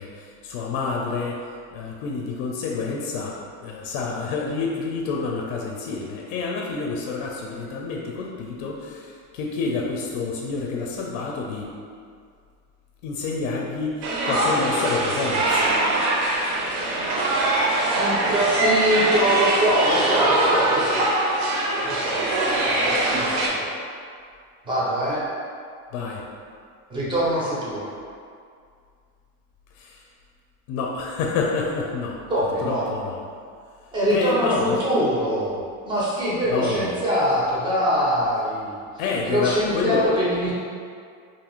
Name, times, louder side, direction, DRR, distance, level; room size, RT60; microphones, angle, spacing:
voice 1, 0.0-1.5 1.7-11.7 13.0-15.7 25.9-26.2 29.7-30.0 30.7-32.2 32.6-33.2 34.1-34.8 36.5-36.9 39.0-40.0, left 4 dB, 75° left, -1 dB, 0.5 m, -28 dB
sound 1, 14.0-23.5, right 1 dB, 60° right, 0.6 m, -22 dB
voice 2, 17.5-21.1 21.8-22.2 22.7-23.7 24.6-25.2 26.9-27.9 32.3-32.9 33.9-35.6 35.9-38.8 39.2-40.5, equal, 15° right, -8 dB, 0.5 m, -23 dB
2.7 x 2.4 x 2.9 m, 2.2 s
cardioid pair, 165°, 39 cm